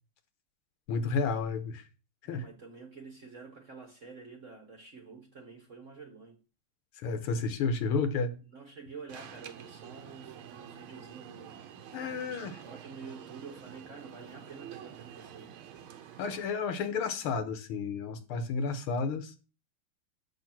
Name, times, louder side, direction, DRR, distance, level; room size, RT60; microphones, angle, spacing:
voice 1, 0.9-1.9 2.3-2.4 7.0-8.3 11.9-12.6 16.2-19.3, left 4 dB, 90° left, 1.9 m, -31 dB
voice 2, 2.2-6.4 8.5-15.5, right 4 dB, 45° right, 1.3 m, -48 dB
Alarm, 9.1-16.4, right 9 dB, 80° right, 1.7 m, -48 dB
6.7 x 5.8 x 6.0 m
omnidirectional pair, 2.3 m